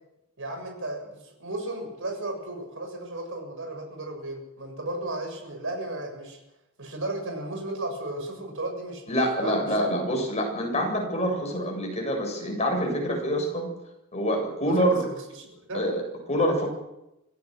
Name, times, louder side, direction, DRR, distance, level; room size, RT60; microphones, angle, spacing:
voice 1, 0.4-6.4 6.8-9.9 14.8-15.8, right 2 dB, 65° right, 3 dB, 7.0 m, -35 dB
voice 2, 9.1-13.7 14.1-15.0 15.7-16.7, equal, 30° left, 1 dB, 7.8 m, -26 dB
25.5 x 16.0 x 6.7 m, 0.89 s
head